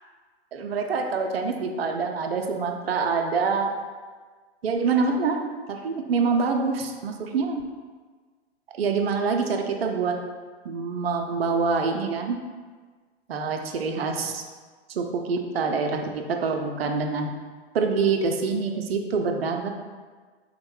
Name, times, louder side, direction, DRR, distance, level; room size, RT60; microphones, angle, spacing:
voice 1, 0.5-3.7 4.6-7.6 8.8-10.2 10.6-12.4 13.3-14.4 14.9-17.3 17.7-19.7, right 4 dB, 65° right, 4 dB, 0.5 m, -26 dB
3.6 x 2.1 x 3.1 m, 1.5 s
figure-of-eight pair, 105°, 33 cm